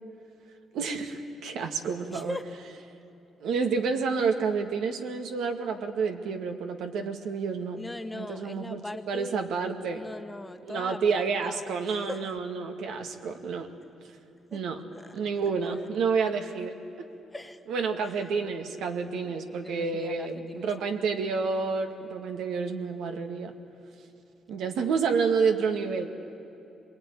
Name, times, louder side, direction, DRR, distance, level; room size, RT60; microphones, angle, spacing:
voice 1, 0.7-2.4 3.4-7.8 8.1-8.8 9.1-10.0 10.7-13.7 14.5-14.8 15.1-16.7 17.7-23.5 24.5-26.1, right 5 dB, 80° right, 5 dB, 2.1 m, -29 dB
voice 2, 2.1-2.5 3.1-3.2 7.8-9.4 9.9-11.6 11.8-12.3 14.5-14.6 14.9-15.9 17.3-17.6 19.2-21.1, left 2 dB, 10° left, 8 dB, 1.4 m, -41 dB
25.5 x 21.0 x 10.0 m, 2.9 s
cardioid pair, 90°, 0 cm